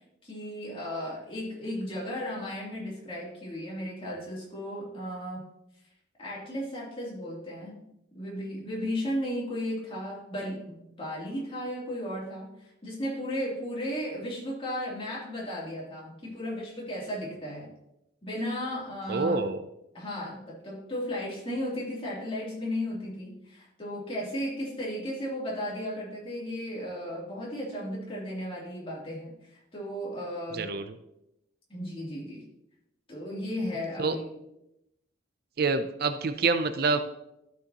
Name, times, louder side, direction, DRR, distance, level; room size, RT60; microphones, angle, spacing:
voice 1, 0.2-5.4 6.2-7.7 8.1-12.5 12.8-17.7 18.2-19.4 19.9-30.7 31.7-32.4 33.1-34.4, equal, 30° left, -5 dB, 3.0 m, -35 dB
voice 2, 19.1-19.6 30.5-30.8 34.0-34.2 35.6-37.0, right 4 dB, 55° right, 10 dB, 0.5 m, -26 dB
13.0 x 6.3 x 2.9 m, 0.84 s
head